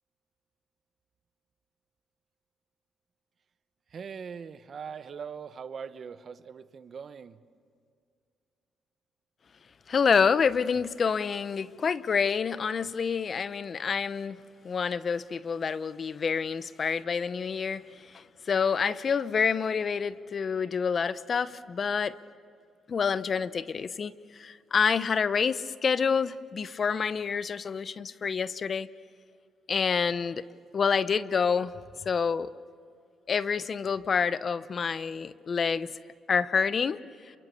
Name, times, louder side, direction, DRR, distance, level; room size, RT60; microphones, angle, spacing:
voice 1, 3.9-7.4, right 6 dB, 50° right, 13 dB, 1.0 m, -41 dB
voice 2, 9.9-14.4 14.6-22.2 22.9-28.9 29.7-30.4 30.7-31.7 32.0-32.5 33.3-35.9 36.3-37.0, left 6 dB, 45° left, 16 dB, 0.7 m, -28 dB
28.0 x 24.0 x 6.9 m, 2.3 s
cardioid pair, 90°, 0 cm